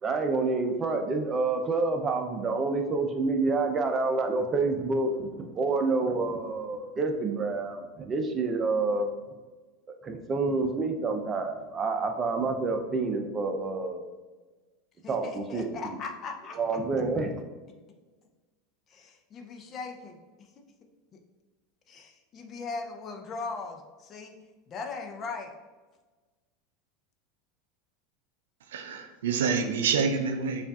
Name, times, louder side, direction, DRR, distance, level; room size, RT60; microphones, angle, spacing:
voice 1, 0.0-9.1 10.0-14.0 15.1-15.7 16.6-17.3, right 3 dB, 30° right, 5 dB, 0.6 m, -28 dB
voice 2, 15.0-16.6 18.9-20.5 21.1-21.2 21.9-24.3 24.7-25.5, left 4 dB, 40° left, 4 dB, 0.6 m, -39 dB
voice 3, 28.7-30.7, right 5 dB, 75° right, 6 dB, 0.4 m, -27 dB
6.8 x 2.5 x 2.4 m, 1.3 s
hypercardioid pair, 85°, 0 cm